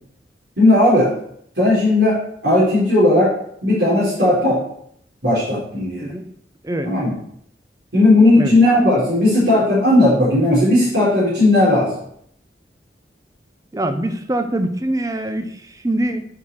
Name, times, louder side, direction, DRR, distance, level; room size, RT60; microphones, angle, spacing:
voice 1, 0.6-1.1 1.6-2.2 2.4-3.3 3.6-4.6 5.2-6.1 6.8-7.1 7.9-11.9, left 1 dB, 70° right, -9 dB, 4.1 m, -15 dB
voice 2, 13.7-16.2, right 1 dB, 20° right, 8 dB, 0.7 m, -23 dB
9.1 x 5.8 x 4.6 m, 0.69 s
head